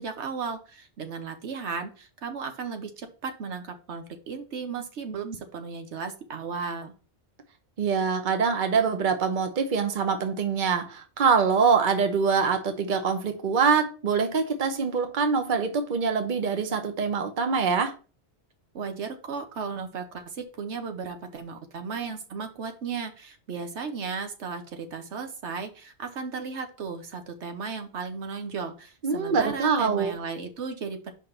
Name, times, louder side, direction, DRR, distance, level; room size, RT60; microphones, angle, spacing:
voice 1, 0.0-6.9 18.7-31.1, right 5 dB, 80° right, 1.2 m, -35 dB
voice 2, 7.8-17.9 29.0-30.2, right 5 dB, 50° right, 1.0 m, -24 dB
5.3 x 3.5 x 5.7 m
omnidirectional pair, 1.1 m